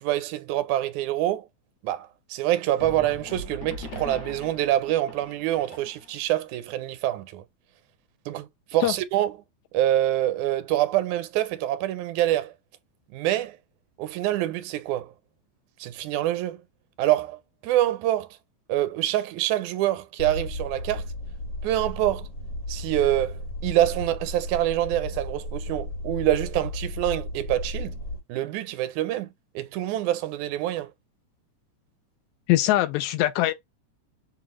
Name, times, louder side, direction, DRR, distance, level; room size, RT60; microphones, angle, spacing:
voice 1, 0.0-1.5 1.8-7.4 8.3-9.3 9.7-12.5 13.1-13.6 14.0-15.1 15.8-16.6 17.0-17.4 17.6-18.3 18.7-21.1 21.6-22.3 22.7-28.0 28.3-30.9, right 13 dB, 85° right, 2.0 m, -26 dB
sound 1, 2.8-6.3, left 2 dB, 65° left, 2.4 m, -40 dB
sound 2, 20.2-28.2, left 1 dB, 50° left, 1.4 m, -34 dB
voice 2, 32.5-33.5, left 15 dB, 85° left, 2.0 m, -22 dB
6.1 x 2.3 x 3.0 m
omnidirectional pair, 3.3 m